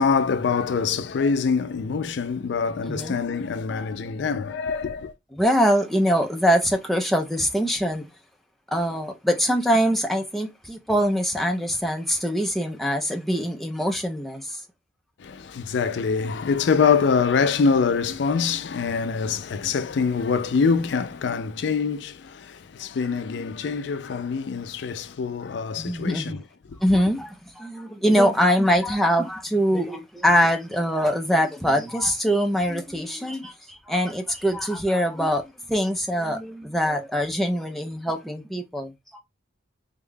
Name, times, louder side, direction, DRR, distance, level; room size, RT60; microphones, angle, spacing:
voice 1, 0.0-5.1 15.2-26.4 26.7-26.8, left 5 dB, 65° left, 0.4 m, -24 dB
voice 2, 2.9-3.2 5.3-8.1 8.7-14.6 25.8-26.4 26.8-39.2, equal, ahead, 0.4 m, -23 dB
3.5 x 2.2 x 3.6 m
head